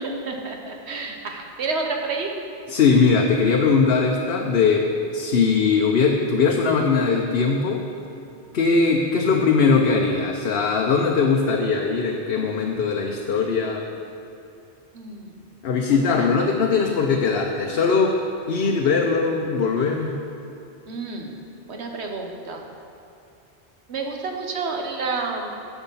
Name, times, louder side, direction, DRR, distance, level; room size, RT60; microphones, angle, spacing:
voice 1, 0.0-2.3 14.9-15.3 15.8-16.3 20.9-21.4 21.7-22.6 23.9-25.5, right 3 dB, 75° right, 2 dB, 1.4 m, -30 dB
voice 2, 2.7-7.8 8.5-13.8 15.6-18.2 18.5-20.2, left 4 dB, 65° left, 1 dB, 0.9 m, -20 dB
11.0 x 7.0 x 5.6 m, 2.8 s
omnidirectional pair, 1.1 m